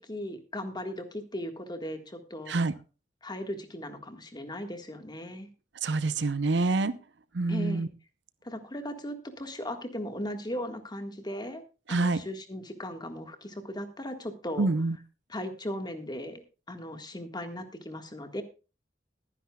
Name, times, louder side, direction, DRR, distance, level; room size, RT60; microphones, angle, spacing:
voice 1, 0.0-2.6 3.2-5.5 7.5-7.9 8.4-11.6 11.9-14.7 15.3-18.4, equal, 25° left, 7 dB, 1.7 m, -37 dB
voice 2, 5.8-6.9 7.3-7.9 11.9-12.2 14.6-15.0, right 3 dB, 75° right, 14 dB, 0.8 m, -26 dB
21.0 x 10.0 x 2.3 m, 0.32 s
head